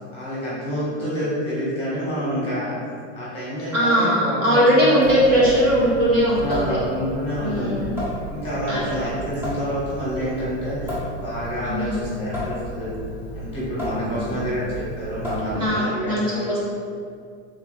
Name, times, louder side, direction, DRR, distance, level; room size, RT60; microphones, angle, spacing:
voice 1, 0.1-2.7 3.1-5.5 6.3-7.8 8.3-10.9 11.2-12.9 13.3-16.6, equal, 15° left, -9 dB, 1.4 m, -28 dB
voice 2, 3.7-6.8 7.4-7.9 8.7-8.9 11.6-12.2 14.1-14.4 15.5-16.6, equal, 40° right, -7 dB, 0.9 m, -20 dB
Water tap faucet / Sink (filling or washing) / Drip, 5.0-15.9, left 1 dB, 5° right, 0.4 m, -33 dB
3.6 x 3.3 x 3.3 m, 2.2 s
supercardioid pair, 160°, 35 cm